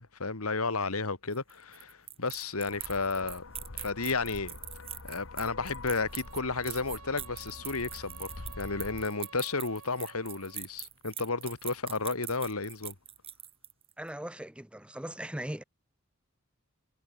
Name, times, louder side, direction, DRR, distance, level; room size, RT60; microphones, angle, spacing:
voice 1, 0.0-3.4 3.8-4.5 5.0-12.9, left 4 dB, 85° left, 2.1 m, -33 dB
sound 1, 1.3-13.9, right 10 dB, 25° right, 1.5 m, -42 dB
sound 2, 2.7-9.1, left 2 dB, 60° left, 1.4 m, -46 dB
sound 3, 5.9-10.7, right 5 dB, 85° right, 3.7 m, -52 dB
voice 2, 14.0-15.6, right 1 dB, 5° right, 0.7 m, -39 dB
head